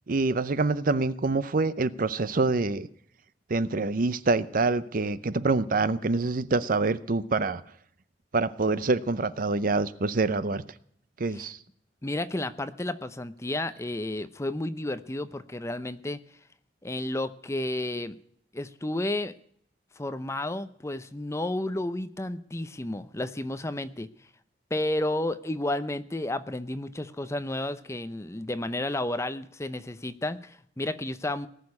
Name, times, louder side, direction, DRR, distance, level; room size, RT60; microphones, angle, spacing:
voice 1, 0.1-2.9 3.5-7.6 8.3-10.6 11.2-11.6, right 3 dB, 50° right, 15 dB, 0.7 m, -26 dB
voice 2, 12.0-16.2 16.8-18.2 18.5-19.3 20.0-24.1 24.7-31.5, left 1 dB, 15° left, 13 dB, 0.6 m, -32 dB
18.5 x 6.8 x 9.6 m, 0.64 s
head